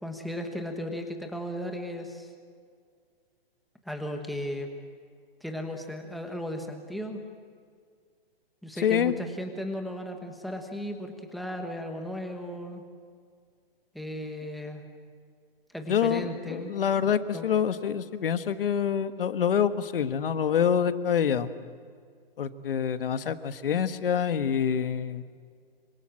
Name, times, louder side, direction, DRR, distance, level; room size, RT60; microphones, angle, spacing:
voice 1, 0.0-2.3 3.8-4.7 5.4-7.2 8.6-12.8 13.9-14.8 15.7-17.5, equal, ahead, 3 dB, 1.2 m, -36 dB
voice 2, 8.8-9.1 15.9-21.5 22.4-25.2, left 8 dB, 65° left, 11 dB, 1.5 m, -26 dB
26.5 x 25.0 x 7.6 m, 2.1 s
hypercardioid pair, 170°, 30 cm